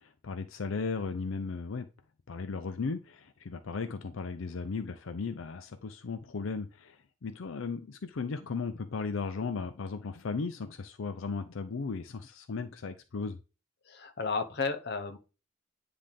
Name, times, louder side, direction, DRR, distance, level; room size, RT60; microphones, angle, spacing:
voice 1, 0.0-1.9 2.3-13.4, left 4 dB, 85° left, 0.5 m, -36 dB
voice 2, 13.9-15.2, left 4 dB, 55° left, 0.9 m, -33 dB
9.8 x 3.4 x 3.6 m
head